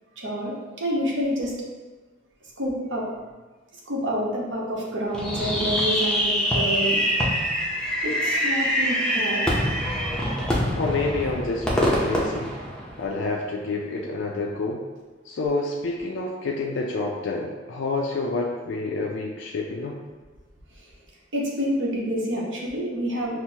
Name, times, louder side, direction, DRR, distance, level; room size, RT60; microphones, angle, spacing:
voice 1, 0.2-1.5 2.6-3.1 3.9-7.0 8.0-9.4 21.3-23.4, equal, 75° right, -4 dB, 0.9 m, -28 dB
Fireworks, 5.1-13.3, equal, 5° left, 0.5 m, -24 dB
voice 2, 10.8-12.6 13.0-14.8 15.2-20.0, left 3 dB, 65° left, -1 dB, 0.4 m, -28 dB
5.8 x 2.1 x 2.7 m, 1.3 s
head